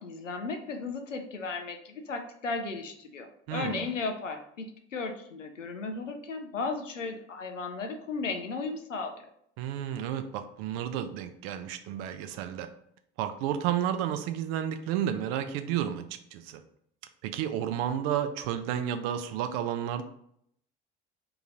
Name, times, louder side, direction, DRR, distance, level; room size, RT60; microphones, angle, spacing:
voice 1, 0.0-9.3, left 4 dB, 90° left, 5 dB, 0.5 m, -35 dB
voice 2, 3.5-3.8 9.6-12.7 13.2-16.0 16.3-16.6 17.2-20.0, right 10 dB, 55° right, 9 dB, 0.6 m, -31 dB
3.8 x 2.9 x 3.7 m, 0.70 s
figure-of-eight pair, 60°, 36 cm